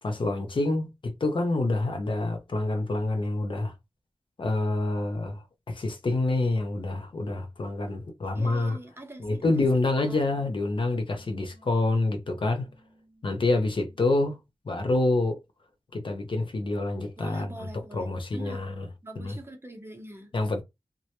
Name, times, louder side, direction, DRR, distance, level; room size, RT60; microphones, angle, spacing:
voice 1, 0.0-3.7 4.4-8.8 9.2-12.7 13.2-14.4 14.7-15.4 15.9-18.9 19.2-19.4 20.3-20.6, left 2 dB, 60° left, 0.5 m, -27 dB
voice 2, 8.3-9.6 10.1-10.2 17.2-18.6 19.0-20.3, right 1 dB, 25° right, 0.7 m, -43 dB
sound 1, 9.4-14.3, right 1 dB, 85° left, 0.9 m, -61 dB
2.1 x 2.0 x 2.8 m
wide cardioid pair, 85°, 10 cm